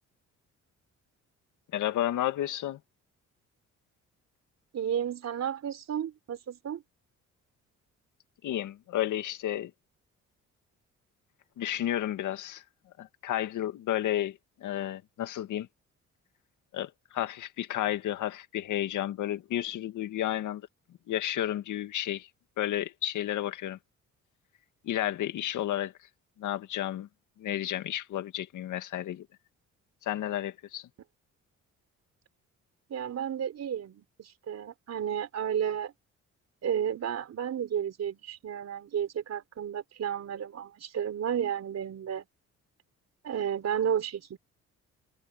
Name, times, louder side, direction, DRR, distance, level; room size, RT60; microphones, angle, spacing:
voice 1, 1.7-2.8 8.4-9.7 11.6-12.6 13.0-15.7 16.7-20.7 21.1-22.3 22.6-23.8 24.8-25.9 26.4-27.1 27.4-29.3 30.0-30.9, left 12 dB, 80° left, 2.1 m, -32 dB
voice 2, 4.7-6.8 32.9-35.9 36.6-42.2 43.2-44.4, right 9 dB, 60° right, 4.2 m, -32 dB
cardioid pair, 90°, 30 cm